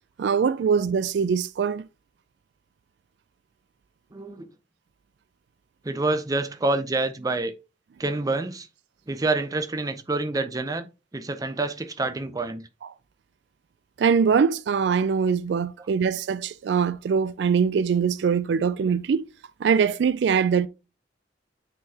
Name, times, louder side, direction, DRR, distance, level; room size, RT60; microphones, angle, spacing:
voice 1, 0.2-1.8 14.0-19.3 19.6-20.7, right 6 dB, 70° right, 0.3 m, -22 dB
voice 2, 4.1-4.5 5.8-7.5 8.0-8.7 9.1-10.9 11.1-12.6 15.8-15.9, right 2 dB, 20° right, 0.5 m, -27 dB
9.0 x 3.8 x 2.8 m
head